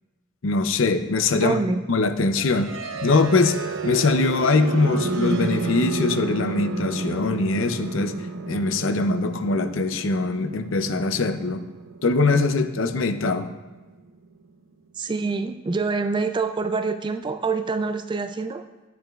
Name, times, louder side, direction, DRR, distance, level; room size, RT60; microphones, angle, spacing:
voice 1, 0.4-1.6 1.9-2.7 3.0-8.1 8.5-11.7 12.0-13.5, left 3 dB, 70° left, 9 dB, 0.6 m, -22 dB
voice 2, 1.3-1.8 15.0-18.6, right 4 dB, 25° right, 9 dB, 0.3 m, -26 dB
sound 1, 2.3-14.2, right 3 dB, 65° right, 0.7 m, -31 dB
10.5 x 9.3 x 2.4 m, 1.2 s
head